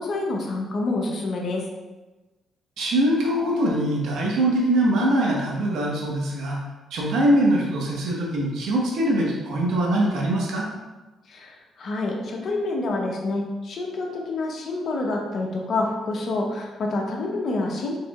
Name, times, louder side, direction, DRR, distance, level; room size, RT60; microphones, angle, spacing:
voice 1, 0.0-1.6 11.3-18.0, left 2 dB, 55° left, 0 dB, 0.9 m, -27 dB
voice 2, 2.8-6.6 6.9-10.7, right 1 dB, 80° right, -3 dB, 1.2 m, -22 dB
4.7 x 4.4 x 2.4 m, 1.1 s
cardioid pair, 90°, 0 cm